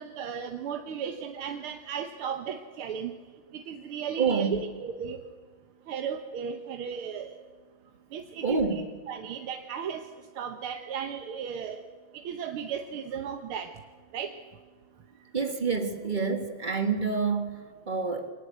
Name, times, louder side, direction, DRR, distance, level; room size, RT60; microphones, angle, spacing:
voice 1, 0.0-3.1 3.5-5.2 5.9-7.3 8.1-8.8 9.1-10.0 10.4-11.8 12.3-13.7 14.1-14.3, right 7 dB, 80° right, 1.9 m, -35 dB
voice 2, 4.2-4.7 8.4-8.9 15.3-18.3, right 5 dB, 25° right, 1.7 m, -28 dB
23.5 x 19.0 x 8.0 m
omnidirectional pair, 2.4 m